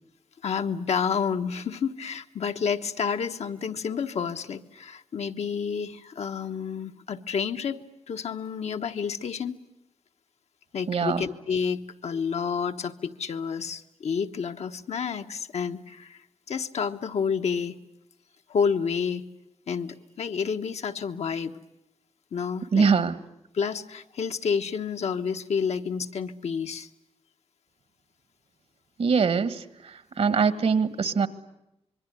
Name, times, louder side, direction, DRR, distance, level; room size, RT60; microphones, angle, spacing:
voice 1, 0.4-9.6 10.7-16.2 16.5-17.8 18.5-19.2 19.7-21.5 22.3-22.9 23.5-26.9, left 6 dB, 80° left, 6 dB, 1.2 m, -29 dB
voice 2, 10.9-11.2 22.7-23.2 29.0-31.3, right 5 dB, 65° right, 15 dB, 1.5 m, -23 dB
26.5 x 22.5 x 9.7 m, 0.85 s
wide cardioid pair, 135°, 11 cm